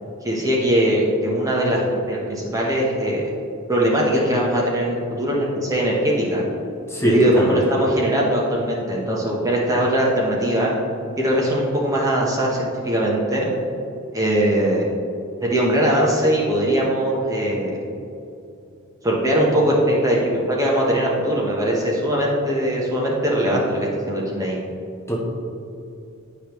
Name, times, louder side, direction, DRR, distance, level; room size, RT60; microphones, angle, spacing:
voice 1, 0.2-3.2 3.7-6.4 7.0-10.7 11.2-13.5 14.1-14.8 15.4-17.8 19.0-24.6, right 1 dB, 15° right, -4 dB, 0.9 m, -20 dB
voice 2, 6.9-7.6 25.1-25.2, equal, 10° left, -3 dB, 1.0 m, -21 dB
9.9 x 5.0 x 3.1 m, 2.7 s
head